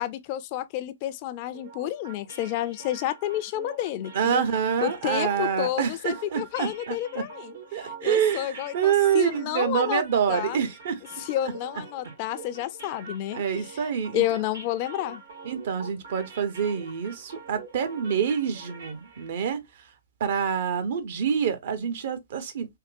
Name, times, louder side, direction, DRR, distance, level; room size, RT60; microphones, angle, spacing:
voice 1, 0.0-4.4 4.8-10.0 10.3-10.6 11.2-13.8 14.1-15.2, left 13 dB, 40° left, 0.4 m, -30 dB
sound 1, 1.5-19.4, right 4 dB, 80° right, 1.4 m, -45 dB
voice 2, 4.1-7.2 7.7-11.0 13.3-14.2 15.4-19.6 20.2-22.8, right 8 dB, 60° right, 0.8 m, -26 dB
3.5 x 2.2 x 2.5 m
hypercardioid pair, 130°, 0 cm